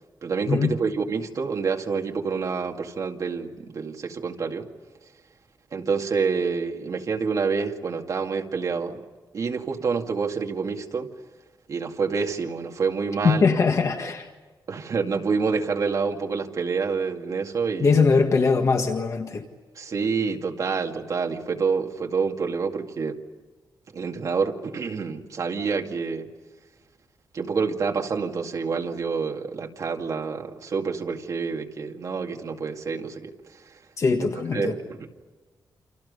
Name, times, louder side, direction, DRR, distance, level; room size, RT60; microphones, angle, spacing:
voice 1, 0.2-4.7 5.7-9.0 9.3-11.1 11.7-13.5 14.7-17.9 19.8-23.2 23.9-26.3 27.3-33.3 34.2-35.1, right 5 dB, 50° right, 2.2 m, -27 dB
voice 2, 13.2-14.3 17.8-19.4 34.0-34.7, left 4 dB, 45° left, 1.8 m, -21 dB
29.0 x 28.0 x 5.4 m
wide cardioid pair, 180°, 7 cm